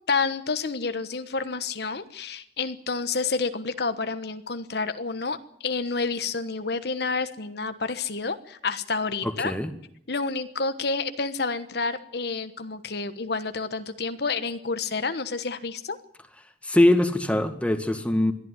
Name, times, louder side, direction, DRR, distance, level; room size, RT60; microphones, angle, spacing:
voice 1, 0.1-5.4 5.6-9.5 10.1-16.0, left 4 dB, 65° left, 11 dB, 1.2 m, -29 dB
voice 2, 9.2-9.7 16.6-18.3, left 1 dB, 5° left, 8 dB, 1.9 m, -22 dB
22.0 x 14.0 x 9.8 m, 0.71 s
head